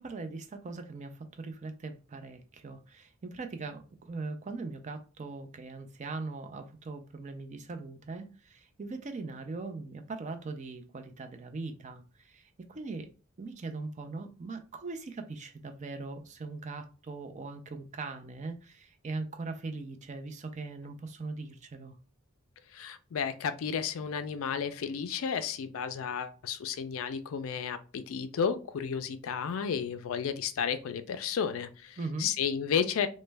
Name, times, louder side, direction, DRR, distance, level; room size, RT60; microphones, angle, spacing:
voice 1, 0.0-13.1 13.4-22.0 32.0-32.3, right 3 dB, 35° right, 0.4 m, -40 dB
voice 2, 22.7-33.1, left 7 dB, 65° left, 0.4 m, -32 dB
3.1 x 2.1 x 3.3 m
head